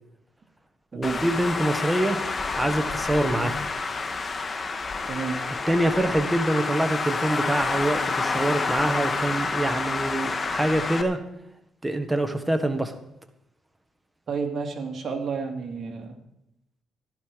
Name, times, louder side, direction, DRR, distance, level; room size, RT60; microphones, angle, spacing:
voice 1, 0.9-2.2 2.6-3.6 5.7-11.2 11.8-13.0, right 1 dB, 10° right, 7 dB, 1.3 m, -25 dB
Traffic noise roadway noise, 1.0-11.0, left 4 dB, 35° left, 1.3 m, -28 dB
voice 2, 5.0-5.4 14.3-16.2, right 5 dB, 50° right, 2 dB, 2.7 m, -31 dB
15.5 x 11.5 x 4.9 m, 0.81 s
cardioid pair, 90°, 0 cm